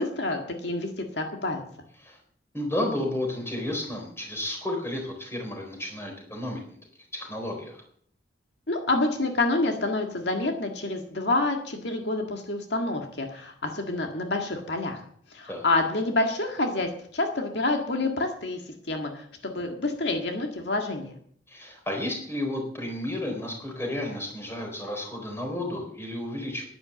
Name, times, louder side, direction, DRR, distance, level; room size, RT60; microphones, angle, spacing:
voice 1, 0.0-1.6 8.7-15.0 15.3-18.6 18.9-21.1, left 2 dB, 65° left, 3 dB, 1.9 m, -28 dB
voice 2, 2.5-6.8 7.1-7.8 15.5-15.7 21.5-26.6, left 1 dB, 15° left, 1 dB, 4.0 m, -32 dB
11.0 x 11.0 x 7.8 m, 0.62 s
head